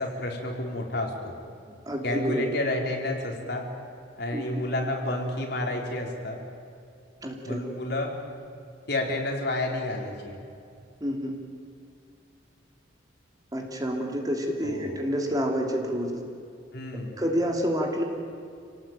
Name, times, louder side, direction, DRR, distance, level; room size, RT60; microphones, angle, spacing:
voice 1, 0.0-1.3 2.0-3.6 4.2-6.4 7.5-8.1 8.9-10.4 14.6-14.9 16.7-17.2, left 1 dB, 55° left, 1 dB, 4.2 m, -30 dB
voice 2, 1.9-2.5 4.3-4.4 7.2-7.6 11.0-11.3 13.5-16.2 17.2-18.0, equal, 20° right, 1 dB, 2.8 m, -28 dB
29.0 x 18.5 x 9.1 m, 2.5 s
head